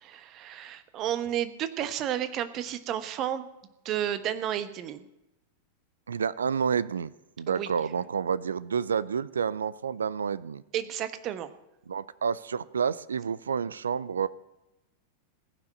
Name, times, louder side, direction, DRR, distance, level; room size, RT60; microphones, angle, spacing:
voice 1, 0.0-3.5 3.8-5.0 7.5-7.7 10.7-11.5, right 11 dB, 35° right, 12 dB, 1.1 m, -32 dB
voice 2, 6.1-7.1 7.4-10.6 11.9-14.3, right 6 dB, 70° right, 19 dB, 0.4 m, -29 dB
16.0 x 6.0 x 10.0 m, 0.92 s
figure-of-eight pair, 90°, 0 cm